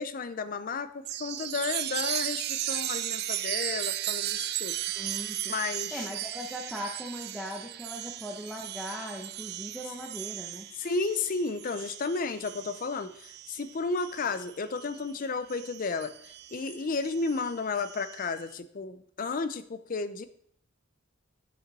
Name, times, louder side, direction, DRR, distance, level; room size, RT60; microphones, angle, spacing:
voice 1, 0.0-4.8 5.5-6.1 10.8-16.1 16.5-20.3, left 4 dB, 40° left, 12 dB, 0.5 m, -33 dB
Chime, 1.1-15.0 15.5-18.3, right 13 dB, 50° right, 0.3 m, -36 dB
voice 2, 5.0-5.5 5.9-10.7, equal, ahead, -2 dB, 0.8 m, -39 dB
8.2 x 5.2 x 4.1 m, 0.64 s
head